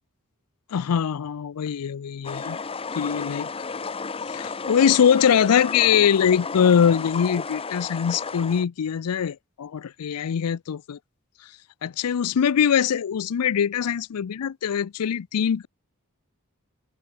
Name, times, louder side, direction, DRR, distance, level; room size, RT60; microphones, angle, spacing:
voice 1, 0.7-2.6 3.0-3.5 4.3-11.0 11.8-15.7, left 8 dB, 90° left, 0.4 m, -22 dB
sound 1, 2.2-8.6, left 4 dB, 25° left, 0.7 m, -33 dB
head